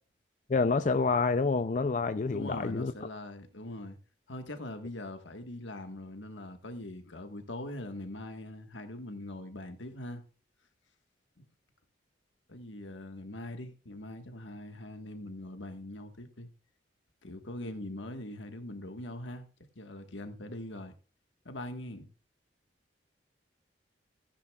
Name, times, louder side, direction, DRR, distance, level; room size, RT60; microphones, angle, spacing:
voice 1, 0.5-2.9, left 4 dB, 40° left, 0.4 m, -27 dB
voice 2, 2.3-4.0 4.3-10.2 11.4-11.5 12.5-16.5 17.2-19.5 19.7-20.9 21.4-22.1, left 1 dB, 90° left, 1.6 m, -42 dB
14.5 x 10.0 x 2.4 m
head